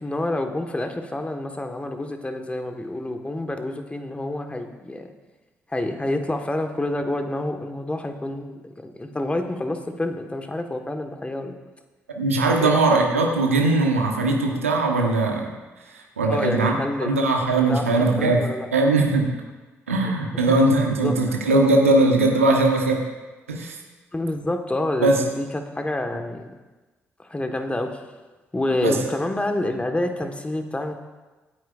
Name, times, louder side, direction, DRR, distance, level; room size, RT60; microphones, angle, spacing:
voice 1, 0.0-5.1 5.7-11.6 12.6-12.8 16.3-17.2 17.6-18.7 20.0-20.5 21.0-21.1 24.1-26.5 27.2-28.0 28.5-30.9, left 1 dB, 15° left, 5 dB, 1.5 m, -28 dB
voice 2, 12.1-15.5 15.9-16.7 17.0-18.4 18.7-19.3 19.9-23.0 23.5-23.8 25.0-25.2 28.8-29.0, right 2 dB, 85° right, 1 dB, 1.2 m, -20 dB
24.0 x 9.5 x 2.5 m, 1.2 s
figure-of-eight pair, 40°, 7 cm